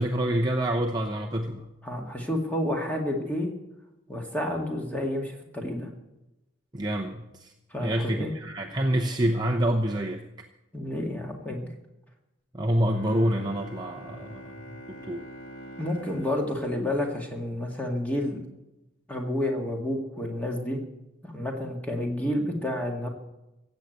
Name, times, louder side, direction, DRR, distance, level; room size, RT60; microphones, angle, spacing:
voice 1, 0.0-1.7 6.7-7.5 7.8-10.2 12.5-15.2, right 1 dB, 20° right, 1 dB, 0.8 m, -27 dB
voice 2, 1.8-3.5 4.1-5.9 7.7-8.3 10.7-11.7 15.8-18.4 19.1-20.8 21.2-23.1, left 1 dB, 5° left, 1 dB, 2.1 m, -30 dB
Bowed string instrument, 12.9-17.8, equal, 80° left, 2.4 m, -46 dB
15.5 x 8.1 x 9.2 m, 0.96 s
head